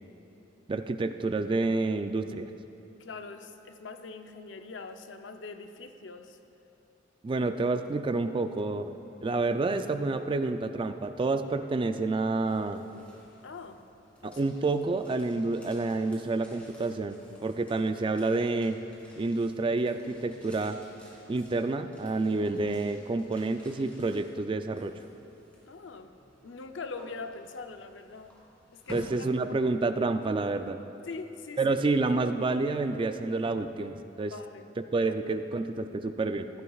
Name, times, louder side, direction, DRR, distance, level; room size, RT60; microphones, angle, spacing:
voice 1, 0.7-2.5 7.2-12.8 14.2-18.8 19.2-20.8 21.3-24.9 28.9-30.8 31.6-34.3 34.8-36.5, right 3 dB, 25° right, 9 dB, 0.3 m, -29 dB
voice 2, 3.0-6.4 13.4-13.8 14.2-14.4 25.7-26.1 26.4-28.4 28.7-29.1 31.1-31.8 34.3-34.7 35.1-35.2, left 4 dB, 75° left, 7 dB, 0.6 m, -42 dB
sound 1, 12.4-30.2, equal, 5° left, 2.5 m, -54 dB
16.0 x 11.5 x 2.4 m, 2.9 s
head